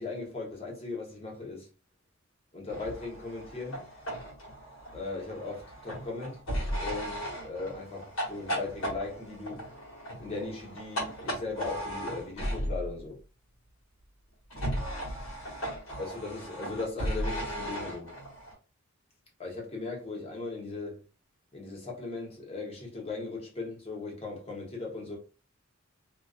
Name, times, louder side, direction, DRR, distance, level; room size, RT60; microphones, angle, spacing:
voice 1, 0.0-1.7 2.5-3.9 4.9-6.4 6.8-9.7 10.2-13.2 16.0-18.1 19.4-21.0 21.5-25.2, left 3 dB, 30° left, 0.8 m, -38 dB
sound 1, 2.7-13.0 14.5-18.5, equal, 80° left, 1.1 m, -36 dB
2.4 x 2.2 x 2.3 m
head